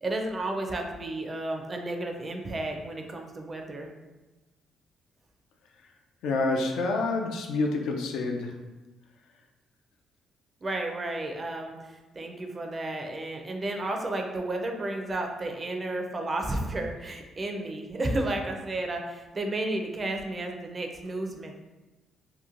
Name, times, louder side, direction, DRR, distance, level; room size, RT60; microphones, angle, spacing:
voice 1, 0.0-3.9 10.6-21.6, right 2 dB, 30° right, 3 dB, 0.4 m, -32 dB
voice 2, 6.2-8.5, left 3 dB, 85° left, 2 dB, 0.3 m, -28 dB
2.9 x 2.2 x 2.4 m, 1.1 s
cardioid pair, 90°, 0 cm